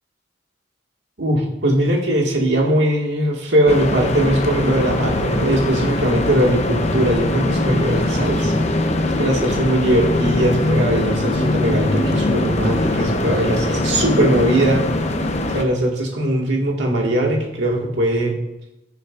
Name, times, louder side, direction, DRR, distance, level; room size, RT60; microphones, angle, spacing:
voice 1, 1.2-8.7 9.2-14.9 15.5-18.3, right 1 dB, 70° right, -1 dB, 1.9 m, -20 dB
sound 1, 3.7-15.6, left 2 dB, 40° left, 0.8 m, -21 dB
15.0 x 6.9 x 2.5 m, 0.89 s
head